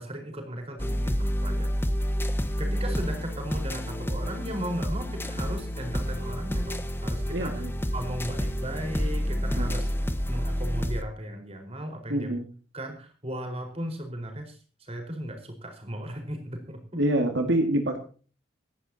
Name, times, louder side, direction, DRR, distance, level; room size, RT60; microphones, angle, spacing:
voice 1, 0.0-1.7 2.6-7.7 7.9-9.9 10.3-12.4 12.7-17.0, right 1 dB, 30° right, 4 dB, 4.6 m, -36 dB
sound 1, 0.8-11.0, equal, 10° left, 1.3 m, -29 dB
voice 2, 7.3-7.7 9.5-9.7 12.1-12.5 17.0-18.0, right 1 dB, 70° right, 5 dB, 2.1 m, -26 dB
26.0 x 11.5 x 2.8 m, 0.38 s
head